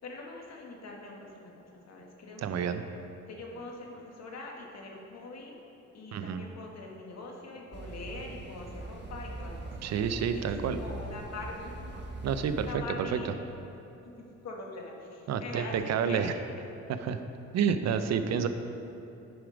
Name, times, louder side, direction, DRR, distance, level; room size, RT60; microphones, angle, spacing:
voice 1, 0.0-2.8 3.3-5.5 5.9-10.0 10.3-11.9 12.6-13.3 14.2-16.4, left 2 dB, 60° left, 0 dB, 1.5 m, -43 dB
voice 2, 2.4-2.8 6.1-6.4 9.8-10.8 12.2-13.2 15.3-16.3 16.9-17.2 17.5-18.5, right 7 dB, 60° right, 9 dB, 0.6 m, -29 dB
sound 1, 7.7-12.8, right 1 dB, 35° right, 1.1 m, -42 dB
9.3 x 5.0 x 5.1 m, 3.0 s
cardioid pair, 90°, 30 cm